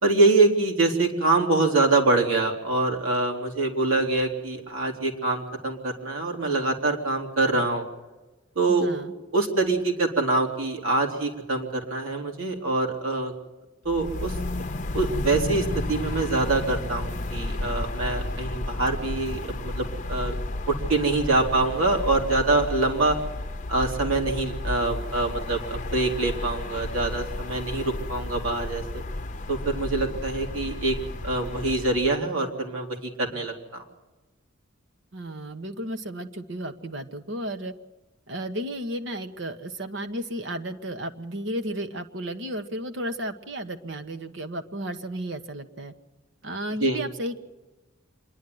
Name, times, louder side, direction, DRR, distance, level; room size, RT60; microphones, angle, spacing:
voice 1, 0.0-7.9 8.5-8.9 9.3-13.3 13.8-14.3 14.9-20.3 20.7-23.2 23.7-29.0 29.5-30.9 31.2-33.8 46.8-47.0, right 3 dB, 80° right, 2 dB, 3.1 m, -25 dB
voice 2, 8.7-9.1 35.1-37.7 38.3-45.9 46.4-47.4, right 1 dB, 60° right, 8 dB, 1.2 m, -33 dB
sound 1, 13.9-32.2, left 2 dB, 35° left, 0.8 m, -32 dB
26.0 x 11.5 x 9.4 m, 1.1 s
head